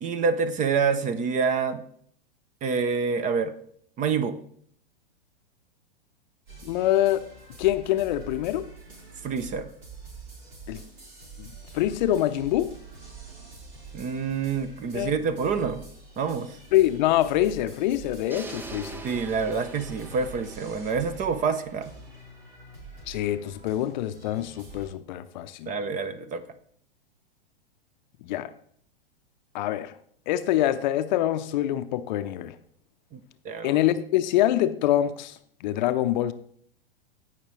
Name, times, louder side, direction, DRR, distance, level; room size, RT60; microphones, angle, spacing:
voice 1, 0.0-1.8 2.6-3.5 4.0-4.4 9.2-9.7 13.9-15.8 16.2-16.6 19.0-21.9 25.7-26.4 33.1-33.2 33.4-33.8, right 5 dB, 25° right, 13 dB, 0.8 m, -27 dB
sound 1, 6.5-24.9, right 4 dB, 70° right, 4.3 m, -46 dB
voice 2, 6.6-7.3 7.6-8.7 10.7-10.8 11.4-11.5 11.7-12.7 14.9-15.1 16.7-19.0 23.1-25.7 28.2-28.5 29.5-29.9 30.3-32.5 33.6-36.3, left 13 dB, 50° left, 12 dB, 0.7 m, -25 dB
sound 2, 18.3-22.3, right 3 dB, 5° right, 0.5 m, -44 dB
17.0 x 5.8 x 3.2 m, 0.63 s
hypercardioid pair, 110°, 30 cm